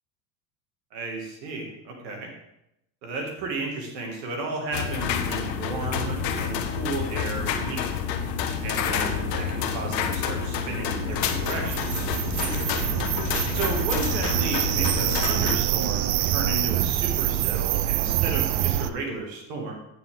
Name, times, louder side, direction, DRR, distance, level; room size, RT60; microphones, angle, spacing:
voice 1, 0.9-2.3 3.0-7.8 8.6-12.1 12.4-12.9 13.5-19.7, right 3 dB, 80° right, 1 dB, 2.3 m, -33 dB
sound 1, 4.7-15.6, left 7 dB, 80° left, 1.0 m, -28 dB
sound 2, 11.1-18.9, right 12 dB, 50° right, 0.6 m, -26 dB
9.2 x 6.7 x 3.7 m, 0.83 s
hypercardioid pair, 85°, 49 cm